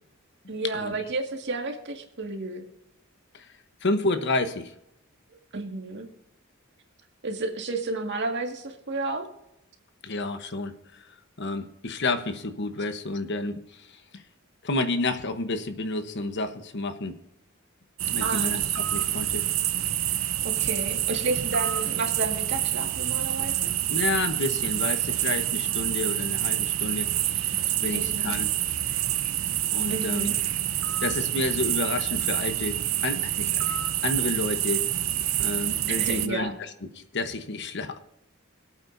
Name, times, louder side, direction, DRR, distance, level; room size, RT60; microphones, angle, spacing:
voice 1, 0.5-2.6 5.5-6.1 7.2-9.3 18.2-18.6 20.4-23.7 27.9-28.3 29.9-30.3 35.9-36.5, right 3 dB, 60° right, 3 dB, 2.0 m, -31 dB
voice 2, 3.8-4.7 10.0-10.7 11.4-14.2 14.6-17.2 18.1-19.5 23.9-27.4 27.8-28.5 29.6-30.3 31.0-33.7 34.0-34.9 35.4-36.7 36.9-38.0, left 2 dB, 60° left, 9 dB, 1.1 m, -30 dB
sound 1, 18.0-36.3, right 12 dB, 75° right, 0.7 m, -27 dB
25.0 x 8.7 x 2.7 m, 0.86 s
head